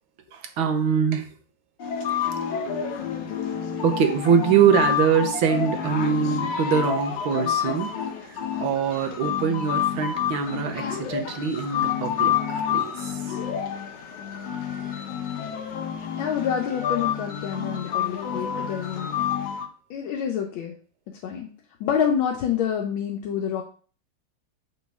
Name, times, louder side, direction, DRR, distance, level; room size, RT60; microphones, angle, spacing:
voice 1, 0.3-1.3 3.8-7.9 8.3-13.4, right 7 dB, 90° right, 6 dB, 1.7 m, -23 dB
sound 1, 1.8-19.7, left 8 dB, 65° left, 1.5 m, -29 dB
voice 2, 16.2-19.3 19.9-20.7 21.1-21.5 21.8-23.6, left 8 dB, 80° left, 2 dB, 1.5 m, -27 dB
6.8 x 5.2 x 3.5 m, 0.41 s
omnidirectional pair, 2.2 m